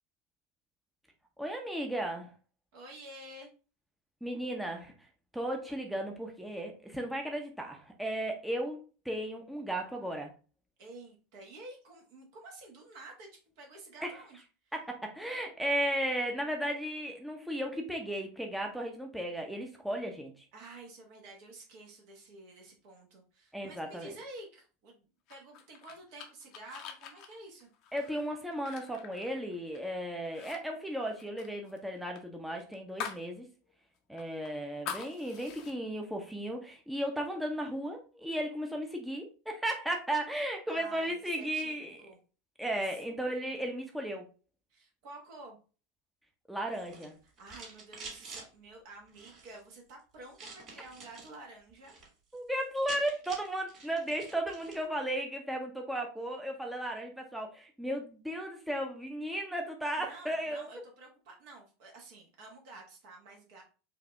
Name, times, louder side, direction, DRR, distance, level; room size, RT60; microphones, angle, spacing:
voice 1, 1.4-2.3 4.2-4.9 5.3-8.8 9.0-10.3 14.0-14.2 14.7-20.3 23.5-24.1 27.9-33.5 34.1-42.0 42.6-44.2 46.5-47.2 52.3-60.7, right 1 dB, 5° right, 2 dB, 0.7 m, -35 dB
voice 2, 2.7-3.5 10.8-14.7 20.5-25.0 25.3-27.7 40.7-41.8 42.0-42.2 42.8-42.9 44.7-45.6 47.2-52.0 60.0-63.6, right 2 dB, 60° right, 0 dB, 1.2 m, -50 dB
sound 1, 25.3-29.9 30.2-30.6 30.8-33.3 33.6-33.7 34.2-35.7, left 8 dB, 50° left, 0.7 m, -44 dB
sound 2, 46.7-48.5 49.1-49.6 50.3-51.3 51.7-52.1 52.4-52.5 52.6-54.9, right 4 dB, 40° right, 2.4 m, -48 dB
4.8 x 2.7 x 3.3 m, 0.35 s
figure-of-eight pair, 85°, 0 cm